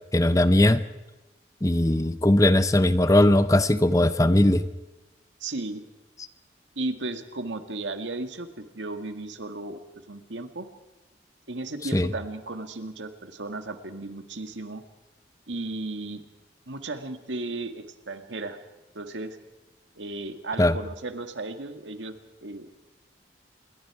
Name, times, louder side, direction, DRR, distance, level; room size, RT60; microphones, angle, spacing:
voice 1, 0.1-0.8 1.6-4.7 11.9-12.1 20.6-20.7, left 1 dB, 20° left, 12 dB, 0.7 m, -19 dB
voice 2, 5.4-5.8 6.8-9.8 10.1-10.7 11.5-14.8 15.5-16.2 16.7-18.6 18.9-19.4 20.0-22.8, right 2 dB, 85° right, 7 dB, 1.9 m, -35 dB
27.5 x 22.0 x 4.9 m, 1.0 s
head